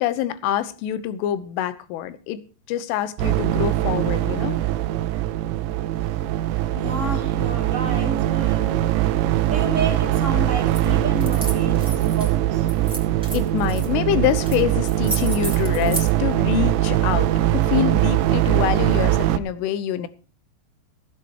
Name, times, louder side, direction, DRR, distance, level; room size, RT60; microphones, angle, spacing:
voice 1, 0.0-2.4 2.7-4.6 13.3-20.1, left 11 dB, 85° left, 3.4 m, -25 dB
sound 1, 3.2-19.4, right 13 dB, 80° right, 2.8 m, -21 dB
voice 2, 6.7-8.9 9.5-12.7, right 1 dB, 25° right, 1.8 m, -31 dB
sound 2, 7.7-12.5, right 9 dB, 50° right, 2.2 m, -35 dB
sound 3, 10.7-10.9 11.2-12.3 12.7-13.9 14.4-14.6 14.8-16.1, equal, ahead, 2.2 m, -32 dB
15.5 x 8.3 x 4.7 m
omnidirectional pair, 5.7 m